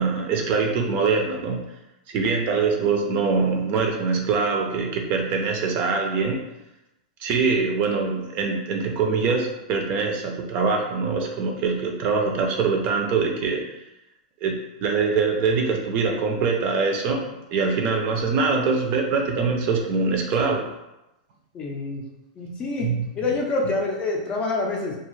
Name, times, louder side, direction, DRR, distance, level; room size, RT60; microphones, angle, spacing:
voice 1, 0.0-1.6 2.1-6.4 7.2-13.6 14.4-17.2 17.5-20.7 22.4-22.5 22.8-23.1, right 4 dB, 40° right, 2 dB, 0.5 m, -23 dB
voice 2, 21.5-22.0 22.4-22.9 23.2-25.0, left 3 dB, 25° left, 0 dB, 0.5 m, -26 dB
2.4 x 2.3 x 3.1 m, 0.91 s
hypercardioid pair, 135°, 4 cm